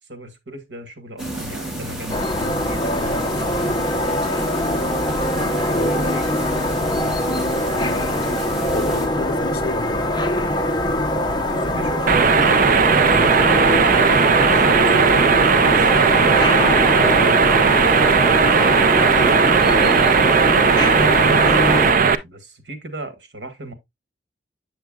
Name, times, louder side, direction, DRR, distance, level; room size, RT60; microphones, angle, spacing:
voice 1, 0.1-3.8 5.2-7.3 11.1-12.1 14.1-16.5 20.8-23.7, right 1 dB, 80° right, 1.5 m, -36 dB
sound 1, 1.2-9.1, right 1 dB, ahead, 2.1 m, -31 dB
sound 2, 2.1-21.9, left 1 dB, 25° left, 0.8 m, -22 dB
voice 2, 5.7-6.1 8.7-10.0 13.1-13.3, left 3 dB, 60° left, 0.7 m, -30 dB
sound 3, 12.1-22.2, right 5 dB, 50° right, 0.5 m, -16 dB
7.9 x 6.8 x 2.3 m
head